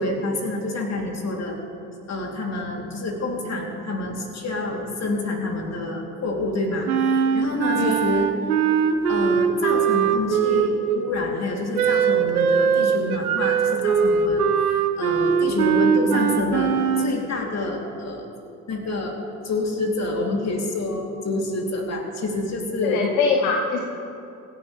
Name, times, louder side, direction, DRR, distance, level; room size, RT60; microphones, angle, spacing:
voice 1, 0.0-1.5 2.1-8.3 9.1-18.2 18.7-19.2 19.4-23.0, left 2 dB, 35° left, 0 dB, 3.2 m, -27 dB
Wind instrument woodwind instrument, 6.9-11.0 11.7-17.1, right 7 dB, 80° right, 0.9 m, -21 dB
voice 2, 22.8-23.8, left 5 dB, 70° left, 2 dB, 1.2 m, -22 dB
25.5 x 11.0 x 3.4 m, 2.6 s
figure-of-eight pair, 55°, 44 cm